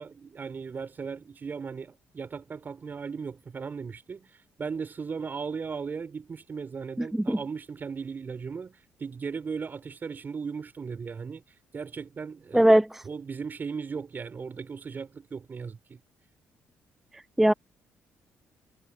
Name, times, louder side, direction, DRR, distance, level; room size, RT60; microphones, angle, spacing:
voice 1, 0.0-4.3 4.6-11.4 11.7-12.7 13.0-16.0, right 5 dB, 40° right, 5.0 m, -37 dB
voice 2, 7.0-7.4 12.5-13.0 17.1-17.5, right 1 dB, 5° right, 0.3 m, -21 dB
cardioid pair, 80°, 5 cm